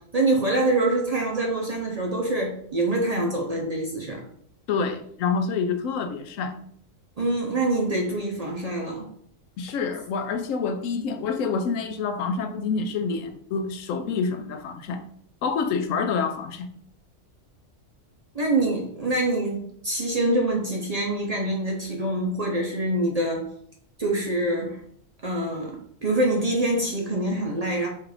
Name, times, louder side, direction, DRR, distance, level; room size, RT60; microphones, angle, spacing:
voice 1, 0.0-4.2 7.2-9.1 18.3-23.5 24.0-24.8 25.2-27.9, right 2 dB, 40° right, 0.6 m, -25 dB
voice 2, 4.7-6.7 9.6-15.0 15.4-16.7, left 5 dB, 80° left, 1.0 m, -27 dB
4.4 x 2.5 x 4.7 m
omnidirectional pair, 1.3 m